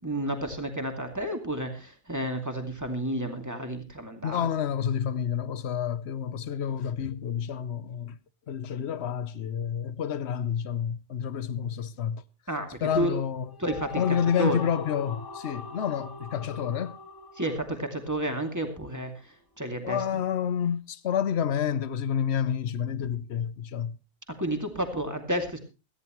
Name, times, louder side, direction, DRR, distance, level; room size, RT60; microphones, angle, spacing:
voice 1, 0.0-4.5 12.5-13.1 13.6-14.0 14.4-14.6 17.4-19.1 19.6-20.0 24.4-25.6, right 1 dB, 15° right, 2.4 m, -31 dB
voice 2, 4.2-8.2 8.5-12.2 12.8-13.5 14.0-17.0 19.8-24.0, left 8 dB, 65° left, 1.1 m, -29 dB
sound 1, 13.4-18.7, left 4 dB, 15° left, 2.2 m, -42 dB
18.0 x 14.0 x 3.1 m
omnidirectional pair, 1.3 m